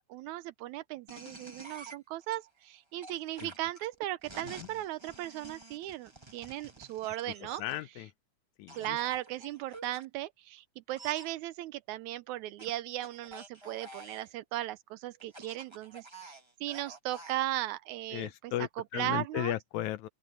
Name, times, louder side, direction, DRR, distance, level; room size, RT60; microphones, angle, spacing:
voice 1, 0.1-7.6 8.0-8.1 8.8-19.6, right 15 dB, 80° right, 1.9 m, -37 dB
sound 1, 1.1-2.4 3.0-7.8 8.7-10.0 10.9-11.3 12.6-14.3 15.2-17.4, right 2 dB, 15° right, 1.2 m, -49 dB
voice 2, 7.6-8.1 8.6-9.0 18.1-20.1, left 14 dB, 80° left, 2.0 m, -35 dB
open air
omnidirectional pair, 3.6 m